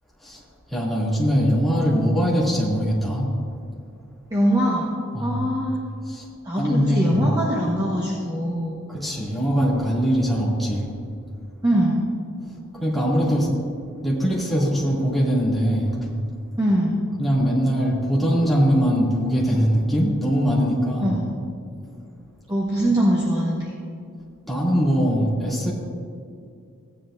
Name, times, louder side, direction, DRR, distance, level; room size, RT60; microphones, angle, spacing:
voice 1, 0.7-3.3 5.1-5.4 6.1-6.3 6.6-7.3 8.9-10.9 12.7-13.5 14.0-16.0 17.2-21.1 24.5-25.7, equal, ahead, -7 dB, 2.2 m, -21 dB
voice 2, 4.3-4.9 5.2-5.8 6.4-8.8 11.6-12.1 16.6-17.0 21.0-21.3 22.5-23.7, equal, 15° right, -5 dB, 1.1 m, -22 dB
15.5 x 10.0 x 2.5 m, 2.4 s
head